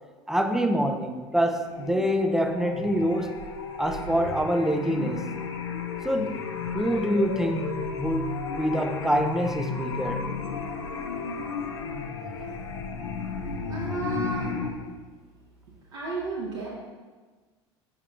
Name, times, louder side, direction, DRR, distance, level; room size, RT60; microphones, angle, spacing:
voice 1, 0.3-3.4 3.8-5.3 6.0-6.4 6.7-10.2, equal, 5° right, 5 dB, 0.5 m, -26 dB
sound 1, 1.4-14.7, left 5 dB, 75° left, 0.8 m, -33 dB
voice 2, 13.7-14.5 15.9-16.7, right 3 dB, 70° right, -6 dB, 1.2 m, -32 dB
7.6 x 5.4 x 2.5 m, 1.4 s
hypercardioid pair, 80°, 15 cm